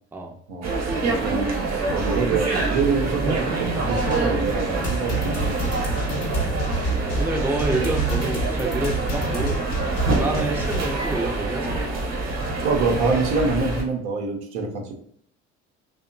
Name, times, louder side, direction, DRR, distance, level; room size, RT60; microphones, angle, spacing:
sound 1, 0.6-13.8, right 3 dB, 50° right, 0.9 m, -26 dB
voice 1, 1.0-5.7 12.6-14.9, right 4 dB, 80° right, 3 dB, 0.6 m, -25 dB
sound 2, 3.9-10.9, right 2 dB, 45° left, 0.8 m, -28 dB
voice 2, 6.0-6.6 7.2-9.6 10.2-11.8, right 2 dB, 5° right, 1 dB, 0.4 m, -28 dB
2.8 x 2.0 x 2.5 m, 0.65 s
hypercardioid pair, 65°, 34 cm